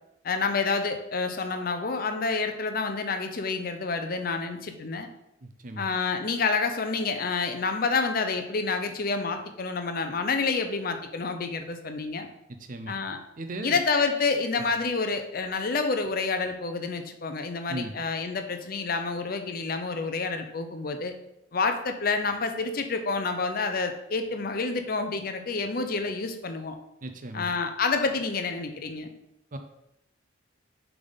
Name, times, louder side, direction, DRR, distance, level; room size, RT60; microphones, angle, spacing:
voice 1, 0.2-5.1 5.8-12.3 12.9-13.2 13.6-21.1 21.5-26.8 27.3-29.1, left 4 dB, 45° left, 7 dB, 0.5 m, -28 dB
voice 2, 5.4-5.9 12.6-12.9 13.4-13.8 14.6-14.7 17.7-18.0 27.0-27.5 29.5-29.6, right 1 dB, 40° right, 6 dB, 0.5 m, -37 dB
6.6 x 3.6 x 4.0 m, 0.84 s
head